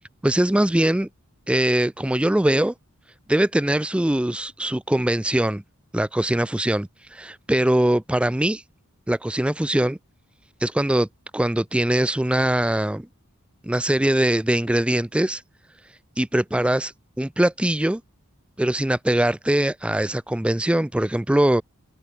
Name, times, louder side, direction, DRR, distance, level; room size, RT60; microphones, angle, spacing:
voice 1, 0.2-1.1 1.5-2.7 3.3-5.6 5.9-8.6 9.1-10.0 10.6-11.1 11.3-13.1 13.6-15.4 16.2-16.9 17.2-18.0 18.6-21.6, right 1 dB, 5° right, 0.3 m, -22 dB
head